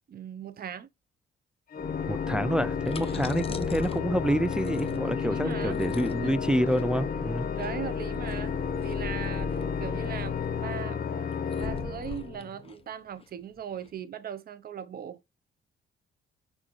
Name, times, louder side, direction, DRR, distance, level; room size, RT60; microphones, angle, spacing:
voice 1, 0.1-0.9 3.0-3.3 5.0-5.8 6.2-6.3 7.5-8.6 8.8-11.0 11.5-15.2, right 8 dB, 50° right, 0.8 m, -39 dB
Organ, 1.7-12.7, left 6 dB, 45° left, 1.3 m, -31 dB
voice 2, 2.1-7.5, equal, 5° right, 0.4 m, -28 dB
sound 1, 2.7-13.9, left 5 dB, 30° left, 0.9 m, -45 dB
6.2 x 4.8 x 3.1 m
cardioid pair, 90°, 20 cm